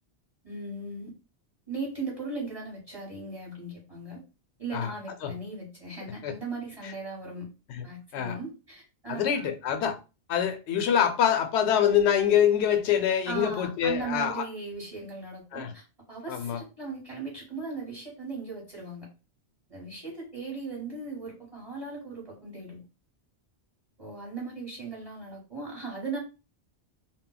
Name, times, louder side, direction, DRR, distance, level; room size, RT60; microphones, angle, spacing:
voice 1, 0.4-1.1 1.7-4.2 4.6-7.5 7.8-9.5 13.3-19.1 19.7-22.8 24.0-26.2, right 3 dB, 35° right, 0.9 m, -38 dB
voice 2, 9.1-10.0 10.3-14.4 15.5-15.7 16.3-16.6, left 9 dB, 80° left, 0.8 m, -25 dB
2.2 x 2.0 x 3.8 m
omnidirectional pair, 1.1 m